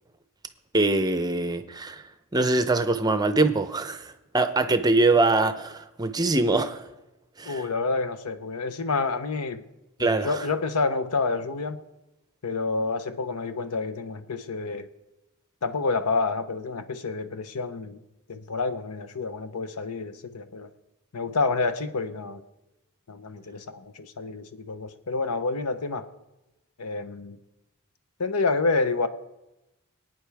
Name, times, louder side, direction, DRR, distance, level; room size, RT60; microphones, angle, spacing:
voice 1, 0.7-2.0 2.3-6.8 7.4-7.6 10.0-10.5, right 2 dB, 20° right, 9 dB, 0.6 m, -23 dB
voice 2, 7.4-9.6 10.0-11.8 12.4-14.9 15.6-18.0 18.3-20.7 21.1-22.4 23.1-26.1 26.8-27.4 28.2-29.1, left 3 dB, 90° left, 10 dB, 0.8 m, -28 dB
23.5 x 9.2 x 3.5 m, 0.99 s
head